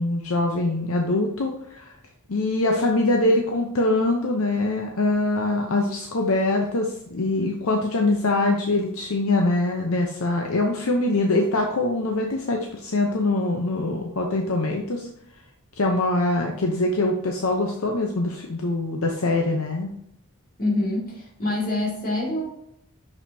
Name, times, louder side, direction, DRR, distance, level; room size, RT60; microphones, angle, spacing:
voice 1, 0.0-1.9 2.3-15.1 15.8-19.9, left 2 dB, 70° left, 2 dB, 0.8 m, -23 dB
voice 2, 20.6-22.5, left 2 dB, 40° left, -2 dB, 2.3 m, -26 dB
6.5 x 5.9 x 2.8 m, 0.75 s
head